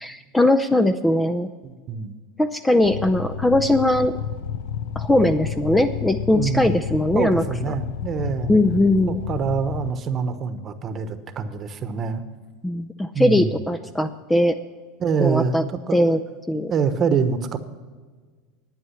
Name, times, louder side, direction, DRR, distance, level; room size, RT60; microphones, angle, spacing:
voice 1, 0.0-1.5 2.4-4.1 5.0-7.4 8.5-9.2 12.6-14.6 15.2-15.6 15.9-16.2 16.5-16.7, left 1 dB, 10° left, 11 dB, 0.5 m, -20 dB
voice 2, 1.6-2.2 6.3-8.5 9.3-12.2 13.1-13.5 15.0-16.2 16.7-17.6, right 6 dB, 35° right, 10 dB, 1.1 m, -25 dB
sound 1, 2.8-9.9, left 8 dB, 80° left, 0.6 m, -31 dB
11.5 x 9.4 x 5.7 m, 1.4 s
supercardioid pair, 115°, 0 cm